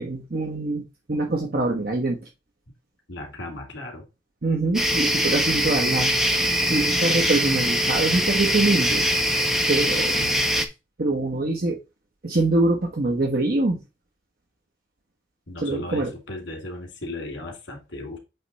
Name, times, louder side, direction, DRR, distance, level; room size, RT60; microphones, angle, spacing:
voice 1, 0.0-2.3 4.4-6.1 6.7-9.4 9.7-10.4 11.0-11.8 12.2-13.8 15.6-16.1, right 2 dB, 50° right, 1 dB, 1.0 m, -24 dB
voice 2, 3.1-4.1 15.5-18.2, left 2 dB, 85° left, 2 dB, 2.4 m, -36 dB
sound 1, 4.7-10.7, equal, ahead, 0.6 m, -22 dB
7.8 x 3.3 x 4.0 m, 0.27 s
head